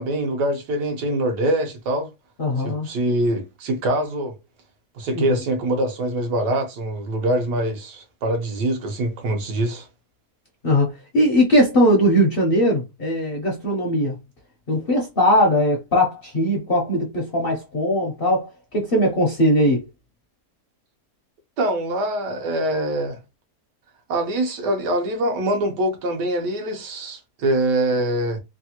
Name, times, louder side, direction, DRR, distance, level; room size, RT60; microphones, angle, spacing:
voice 1, 0.0-2.1 2.6-4.3 4.9-9.9 21.6-23.2 24.1-28.4, right 1 dB, 85° right, 1.4 m, -24 dB
voice 2, 2.4-2.9 5.1-5.4 10.6-14.2 14.7-19.8, equal, 55° left, 0.6 m, -20 dB
3.3 x 2.3 x 2.8 m
omnidirectional pair, 1.8 m